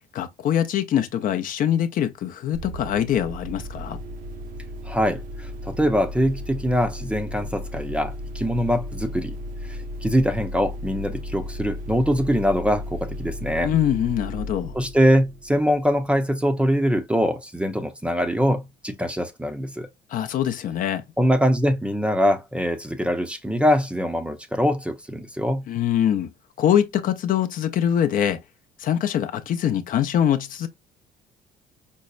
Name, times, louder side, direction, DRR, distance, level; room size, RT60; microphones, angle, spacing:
voice 1, 0.1-4.0 13.6-14.8 20.1-21.0 25.7-26.3 26.6-28.4 28.8-30.7, left 10 dB, 55° left, 0.5 m, -23 dB
sound 1, 2.5-16.0, left 1 dB, 55° right, 0.6 m, -35 dB
voice 2, 4.8-9.3 9.7-13.7 14.7-19.9 21.2-25.7, equal, 5° right, 0.5 m, -23 dB
5.3 x 2.0 x 2.3 m
cardioid pair, 110°, 17 cm